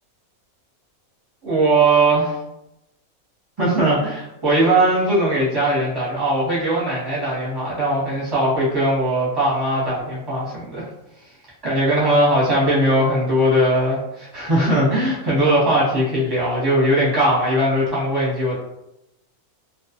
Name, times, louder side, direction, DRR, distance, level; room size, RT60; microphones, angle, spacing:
voice 1, 1.4-2.4 3.6-10.9 11.6-18.6, right 1 dB, 20° right, -7 dB, 0.8 m, -19 dB
2.3 x 2.3 x 2.7 m, 0.87 s
omnidirectional pair, 1.5 m